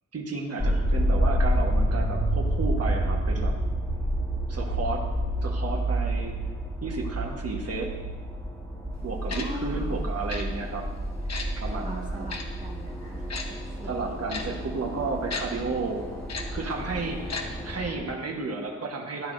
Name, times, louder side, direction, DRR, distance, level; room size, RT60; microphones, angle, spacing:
voice 1, 0.1-3.5 4.5-5.0 5.4-6.3 6.8-7.9 9.0-10.9 11.6-12.3 13.8-16.1 16.5-19.3, right 3 dB, 50° right, 0 dB, 1.2 m, -32 dB
sound 1, 0.6-18.0, equal, 10° left, 1.5 m, -30 dB
sound 2, 1.7-10.4, right 4 dB, 70° right, 0.7 m, -34 dB
Tick-tock, 9.3-9.4 10.3-10.4 11.3-11.5 12.3-12.4 13.3-13.4 14.3-14.4 15.3-15.4 16.3-16.4 17.3-17.4 17.7-17.8, left 4 dB, 55° left, 0.9 m, -33 dB
voice 2, 9.3-10.0 11.7-14.1, equal, 25° right, -2 dB, 1.8 m, -42 dB
13.0 x 9.8 x 2.6 m, 1.3 s
wide cardioid pair, 155°, 32 cm